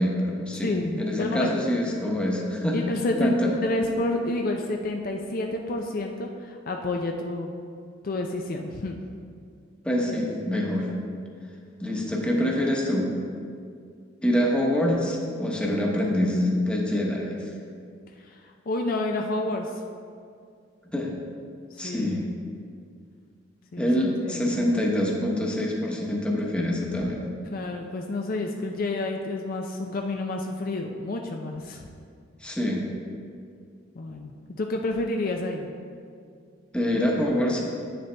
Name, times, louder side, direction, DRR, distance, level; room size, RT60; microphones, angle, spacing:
voice 1, 0.0-0.7 1.0-2.8 3.2-3.5 9.8-10.9 11.8-13.1 14.2-17.4 20.9-21.1 21.8-22.2 23.8-27.2 32.4-32.8 36.7-37.6, left 1 dB, 5° left, -2 dB, 1.0 m, -25 dB
voice 2, 0.6-1.5 2.7-3.3 3.6-7.5 8.0-9.0 18.2-18.4 18.7-19.7 21.7-22.2 23.7-23.9 24.2-24.5 27.5-31.9 34.0-35.7, left 2 dB, 50° left, 2 dB, 0.5 m, -29 dB
9.1 x 6.7 x 3.4 m, 2.3 s
head